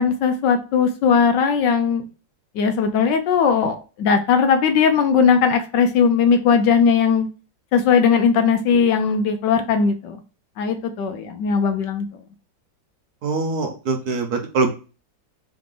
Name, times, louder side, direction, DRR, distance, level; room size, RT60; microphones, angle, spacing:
voice 1, 0.0-2.0 2.5-7.3 7.7-10.2 10.6-12.1, left 6 dB, 70° left, 7 dB, 1.2 m, -18 dB
voice 2, 13.2-14.7, right 3 dB, 60° right, 2 dB, 1.2 m, -23 dB
3.8 x 3.5 x 3.6 m, 0.33 s
omnidirectional pair, 2.1 m